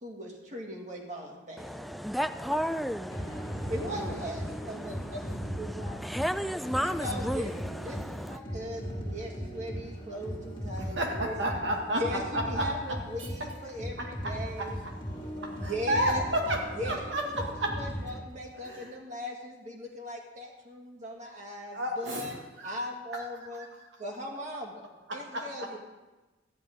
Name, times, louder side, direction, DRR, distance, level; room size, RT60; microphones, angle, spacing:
voice 1, 0.0-1.9 3.7-6.0 6.8-7.5 7.8-11.3 11.9-14.8 15.6-16.2 16.7-22.4 22.6-23.7 24.0-25.8, equal, 40° right, 1.9 m, -39 dB
voice 2, 1.6-8.4, equal, ahead, 0.3 m, -34 dB
sound 1, 3.1-18.2, equal, 25° left, 2.0 m, -38 dB
voice 3, 10.8-12.0 12.3-12.7 14.0-14.3 14.6-14.7 15.9-17.7 18.6-18.9 21.7-22.3 22.6-22.8 23.1-23.2 25.1-25.7, right 1 dB, 90° right, 2.0 m, -31 dB
13.5 x 10.0 x 3.7 m
head